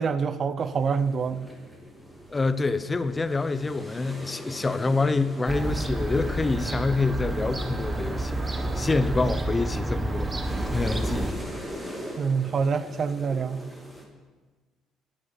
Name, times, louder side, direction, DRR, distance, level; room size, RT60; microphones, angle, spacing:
voice 1, 0.0-1.4 12.2-13.6, right 5 dB, 45° right, 14 dB, 0.6 m, -26 dB
sound 1, 0.6-14.0, equal, 5° right, 2.4 m, -41 dB
voice 2, 2.3-11.4, left 3 dB, 20° left, 14 dB, 0.5 m, -27 dB
Fowl / Gull seagull, 5.5-11.3, right 2 dB, 20° right, 1.1 m, -29 dB
10.0 x 8.0 x 7.2 m, 1.3 s
cardioid pair, 100°, 0 cm